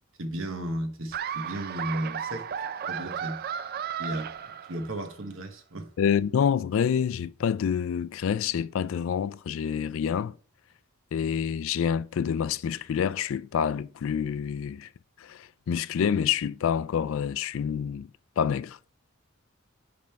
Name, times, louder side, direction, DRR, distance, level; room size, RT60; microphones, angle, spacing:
voice 1, 0.2-2.4 2.9-3.4 4.0-4.3 4.7-5.9, right 1 dB, 65° right, 1.1 m, -34 dB
Laughter, 1.1-5.1, right 8 dB, 45° right, 0.3 m, -34 dB
voice 2, 6.0-10.3 11.1-14.9 15.2-18.1 18.4-18.8, left 7 dB, 65° left, 0.3 m, -27 dB
5.3 x 5.3 x 4.3 m
head